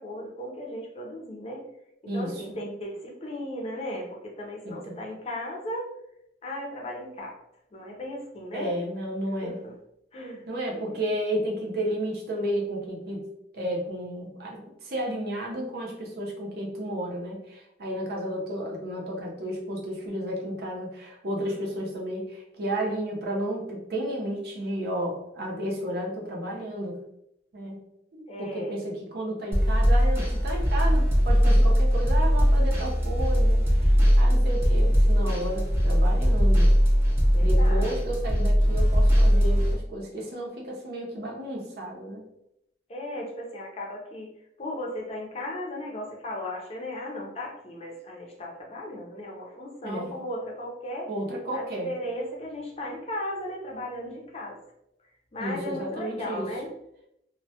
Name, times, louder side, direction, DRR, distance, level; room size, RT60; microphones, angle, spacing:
voice 1, 0.0-1.6 2.0-5.9 6.4-7.4 7.7-8.8 9.4-9.7 10.1-11.0 28.3-28.8 37.3-37.9 42.9-44.3 44.6-51.1 51.5-54.6 55.3-56.7, left 1 dB, 35° left, -1 dB, 0.5 m, -36 dB
voice 2, 2.1-2.6 4.6-5.0 8.5-9.6 10.5-13.2 13.5-27.0 27.5-27.8 28.1-36.7 37.4-42.2 49.8-50.1 51.1-51.9 55.4-56.5, right 1 dB, 60° right, -1 dB, 0.6 m, -32 dB
sound 1, 29.5-39.7, equal, 15° right, 0.5 m, -20 dB
2.1 x 2.1 x 2.7 m, 0.79 s
head